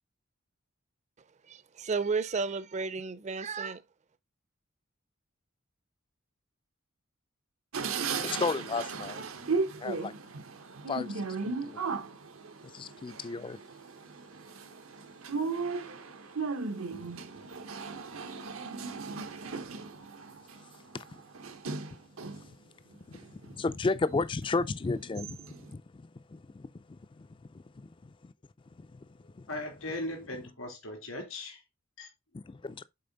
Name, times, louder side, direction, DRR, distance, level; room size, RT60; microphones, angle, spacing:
voice 1, 1.5-3.8, right 4 dB, 35° right, 0.5 m, -32 dB
sound 1, 7.7-22.5 22.9-23.9 24.5-24.6 24.9-25.7, right 4 dB, 85° right, 1.0 m, -37 dB
voice 2, 8.2-9.2 9.8-10.1 10.9-11.8 12.6-13.6 20.9-21.0 23.1-26.0 26.3-27.3 27.5-28.3 28.8-29.1 29.3-29.5 32.3-32.8, left 3 dB, 25° left, 0.3 m, -34 dB
voice 3, 29.5-31.6 32.0-32.1, left 1 dB, 85° left, 3.0 m, -38 dB
6.7 x 4.4 x 3.9 m
head